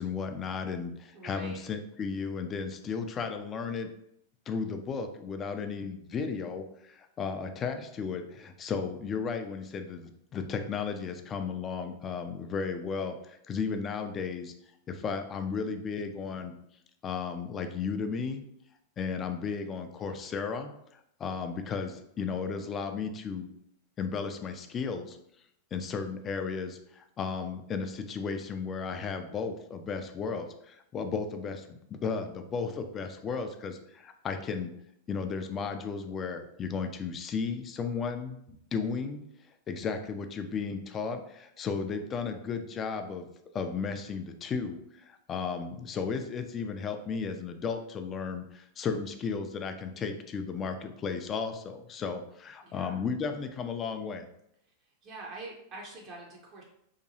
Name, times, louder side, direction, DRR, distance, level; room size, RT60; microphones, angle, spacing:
voice 1, 0.0-3.9 4.5-14.5 14.9-16.6 17.0-18.4 19.0-20.7 21.2-23.5 24.0-25.2 25.7-34.7 35.1-39.2 39.7-43.3 43.5-54.3, left 5 dB, 30° left, 7 dB, 0.3 m, -34 dB
voice 2, 1.1-1.6 52.6-53.0 55.0-56.6, right 3 dB, 40° right, -2 dB, 0.5 m, -44 dB
2.8 x 2.2 x 2.7 m, 0.75 s
figure-of-eight pair, 90°, 0 cm